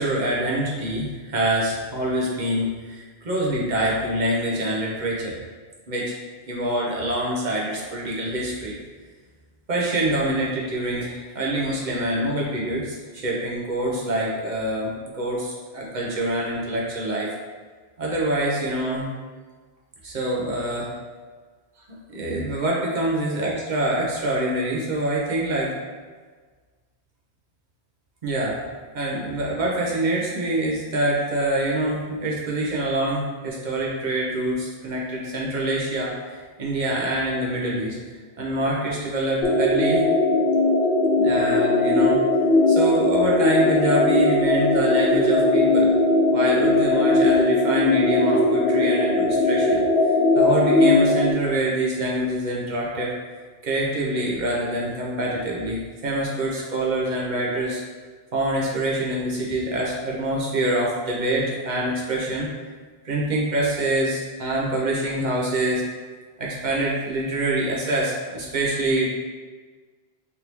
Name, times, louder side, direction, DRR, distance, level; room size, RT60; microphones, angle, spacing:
voice 1, 0.0-5.4 5.9-6.1 6.5-8.8 9.7-17.3 18.0-19.1 20.0-20.9 22.1-25.7 28.2-28.7 28.9-38.0 38.4-40.1 41.2-42.2 42.7-45.9 46.3-49.8 50.3-53.1 53.6-57.8 58.3-62.5 63.0-65.8 66.4-69.1, right 1 dB, 50° right, -4 dB, 0.7 m, -25 dB
sound 1, 39.4-51.3, left 2 dB, 70° left, 0.8 m, -19 dB
3.4 x 2.6 x 2.9 m, 1.5 s
omnidirectional pair, 1.1 m